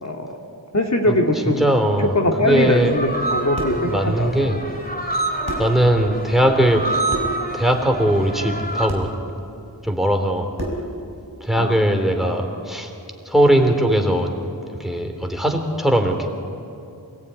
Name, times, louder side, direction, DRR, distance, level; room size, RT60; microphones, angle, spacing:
voice 1, 0.0-0.4 0.7-1.7 2.0-4.6 11.6-11.8, left 1 dB, 45° left, 1 dB, 2.3 m, -21 dB
voice 2, 1.6-2.1 2.4-2.9 3.9-4.5 5.6-6.8 7.5-9.1 9.8-10.5 11.4-12.9 13.3-14.3 14.8-16.3, right 1 dB, ahead, 4 dB, 3.3 m, -19 dB
sound 1, 2.6-8.9, right 2 dB, 25° left, 3.1 m, -28 dB
sound 2, 3.6-3.9 5.1-5.2 5.5-5.8 7.1-7.4 8.9-9.1 10.6-10.9, equal, 70° left, 4.8 m, -29 dB
27.0 x 19.5 x 9.8 m, 2.7 s
wide cardioid pair, 60°, 39 cm